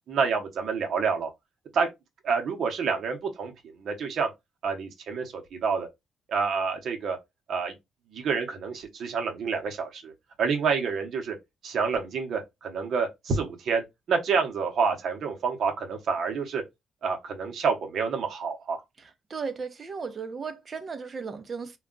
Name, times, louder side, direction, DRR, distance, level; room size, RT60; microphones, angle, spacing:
voice 1, 0.1-1.3 1.7-1.9 2.2-3.5 3.8-4.3 4.6-5.9 6.3-7.2 7.5-7.7 8.1-10.1 10.4-11.4 11.6-13.8 14.1-16.6 17.0-18.8, right 5 dB, 65° right, 0.8 m, -28 dB
voice 2, 19.0-21.8, right 5 dB, 40° right, 0.6 m, -36 dB
2.3 x 2.2 x 3.7 m
cardioid pair, 90°, 0 cm